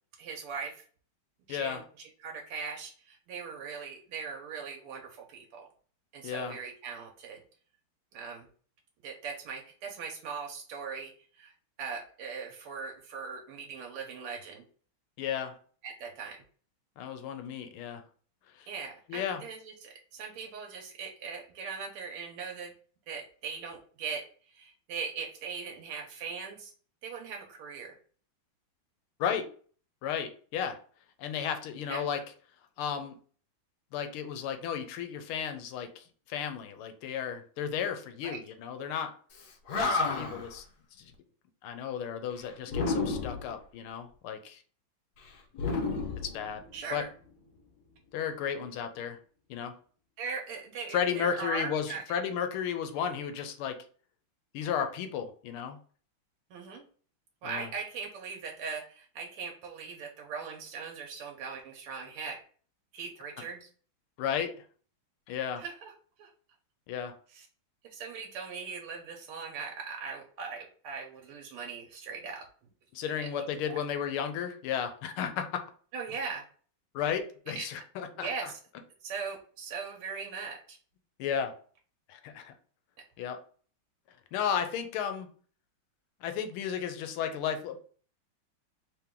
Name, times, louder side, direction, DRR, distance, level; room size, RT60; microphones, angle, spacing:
voice 1, 0.2-0.8 1.5-1.8 2.2-5.7 6.1-7.4 8.1-8.5 9.0-11.1 11.4-14.6 15.8-16.4 18.7-22.7 23.1-26.7 27.0-28.0 31.9-32.1 38.2-38.4 46.7-47.1 50.2-52.0 56.5-56.8 57.4-62.4 62.9-63.7 65.6-65.9 66.2-66.3 67.3-67.5 67.8-72.4 73.2-73.3 75.9-76.4 77.6-77.7 78.1-78.6 79.0-80.8, right 5 dB, 85° right, 0 dB, 1.6 m, -40 dB
voice 2, 1.5-1.8 6.2-6.6 15.2-15.5 17.0-18.0 18.6-18.7 19.1-19.4 29.2-29.4 30.0-30.8 31.2-32.2 32.8-33.1 33.9-39.1 39.8-40.6 41.6-44.6 46.2-46.6 46.9-47.0 48.1-49.2 49.5-49.7 50.9-53.8 54.5-55.8 57.4-57.7 64.2-64.5 65.3-65.6 66.9-67.1 72.9-75.6 76.9-78.5 81.2-81.5 82.1-82.5 83.2-83.4 84.3-85.3 86.2-87.8, left 8 dB, 85° left, 7 dB, 1.5 m, -33 dB
Animal, 39.4-39.5 39.7-40.5 42.7-43.5 45.5-46.9, left 3 dB, 60° left, 1.1 m, -31 dB
3.5 x 3.0 x 3.6 m, 0.43 s
omnidirectional pair, 2.3 m